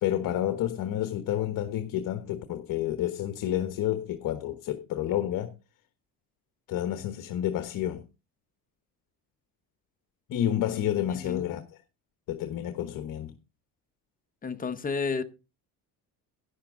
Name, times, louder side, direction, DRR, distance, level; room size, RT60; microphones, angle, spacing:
voice 1, 0.0-5.5 6.7-8.0 10.3-11.6 12.3-13.3, left 11 dB, 55° left, 1.2 m, -29 dB
voice 2, 11.1-11.5 14.4-15.2, left 5 dB, 20° left, 0.9 m, -31 dB
11.5 x 10.0 x 3.7 m
cardioid pair, 130°, 39 cm